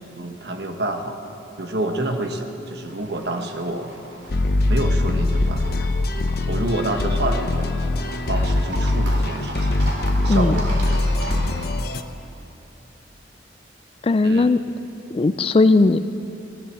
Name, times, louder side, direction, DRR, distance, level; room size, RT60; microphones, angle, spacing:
voice 1, 0.2-1.2 1.6-3.9 4.7-5.6 6.5-7.7 8.3-9.8 10.2-11.0 11.4-11.5 14.2-14.5, right 1 dB, 60° right, 5 dB, 1.3 m, -28 dB
Livestock farm animals working animals, 2.8-11.7, right 1 dB, 75° right, 3.9 m, -37 dB
sound 1, 4.3-12.0, left 2 dB, 55° left, 0.7 m, -22 dB
voice 2, 10.3-10.6 14.0-14.6 15.1-16.0, left 3 dB, 30° left, 12 dB, 0.3 m, -17 dB
16.5 x 11.5 x 7.4 m, 2.8 s
head